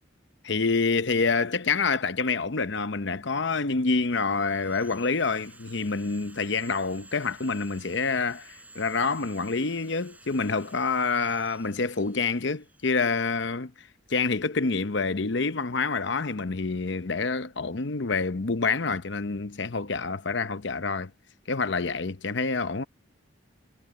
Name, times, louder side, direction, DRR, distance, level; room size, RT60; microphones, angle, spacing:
voice 1, 0.4-13.7 14.1-21.1 21.5-22.8, left 4 dB, 60° left, 0.8 m, -27 dB
Sawing, 3.6-13.5, right 3 dB, 10° right, 4.7 m, -52 dB
head